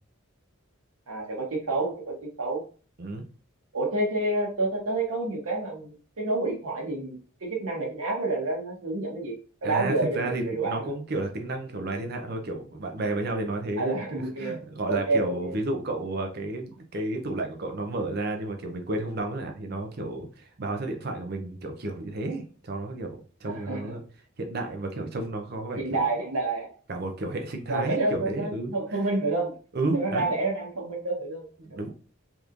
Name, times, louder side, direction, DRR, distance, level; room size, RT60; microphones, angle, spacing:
voice 1, 1.1-2.6 3.7-10.9 13.8-15.6 23.4-23.9 25.7-26.7 27.7-29.5 29.9-31.5, right 2 dB, 90° right, -1 dB, 1.0 m, -29 dB
voice 2, 9.6-23.2 23.4-24.0 24.4-26.0 26.9-29.0 29.7-30.3 31.6-31.9, right 2 dB, 45° right, 4 dB, 0.6 m, -32 dB
3.5 x 3.0 x 2.5 m, 0.38 s
head